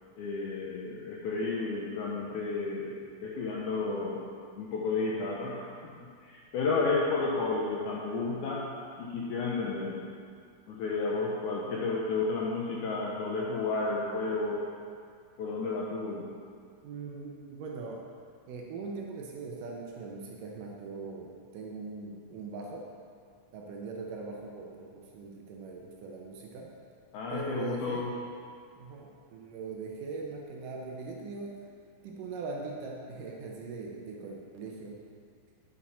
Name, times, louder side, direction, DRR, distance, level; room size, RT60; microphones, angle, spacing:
voice 1, 0.2-4.3 4.5-5.7 6.2-8.7 9.0-10.1 10.7-14.7 15.4-16.3 27.1-28.1, left 3 dB, 75° left, -3 dB, 1.8 m, -32 dB
voice 2, 16.8-18.1 18.5-22.9 23.5-26.7 27.3-28.1 28.8-31.6 32.0-35.0, right 4 dB, 75° right, -1 dB, 2.2 m, -41 dB
9.6 x 5.8 x 4.2 m, 2.2 s
omnidirectional pair, 4.2 m